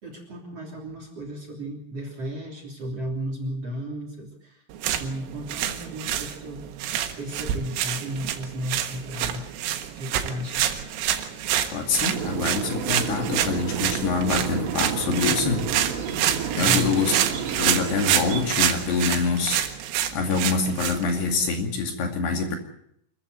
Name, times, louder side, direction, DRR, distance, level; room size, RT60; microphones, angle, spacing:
voice 1, 0.0-4.6 5.0-6.6 7.2-9.5 10.0-10.7 16.6-17.0, equal, 35° right, 4 dB, 3.6 m, -34 dB
sound 1, 4.7-21.5, right 11 dB, 85° right, 4.0 m, -28 dB
voice 2, 11.7-15.7 16.6-17.2 17.6-19.6 20.1-22.6, left 4 dB, 60° left, 4 dB, 4.3 m, -25 dB
sound 2, 12.1-18.4, right 7 dB, 65° right, 4.7 m, -31 dB
26.5 x 14.5 x 8.1 m, 0.72 s
omnidirectional pair, 5.7 m